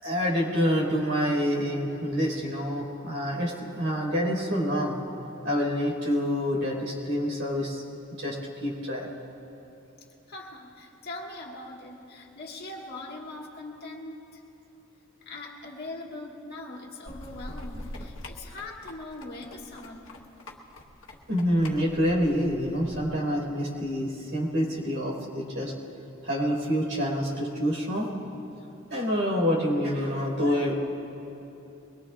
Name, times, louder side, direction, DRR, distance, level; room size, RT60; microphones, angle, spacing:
voice 1, 0.0-5.0 5.4-7.8 8.1-9.1 21.3-25.7 26.2-28.1 28.9-30.7, equal, 70° right, -2 dB, 4.6 m, -27 dB
voice 2, 10.3-14.4 15.2-20.1 30.4-30.9, left 2 dB, 55° left, -1 dB, 1.8 m, -41 dB
sound 1, 17.1-23.1, left 1 dB, 70° left, 1.4 m, -44 dB
23.0 x 21.5 x 2.5 m, 2.9 s
head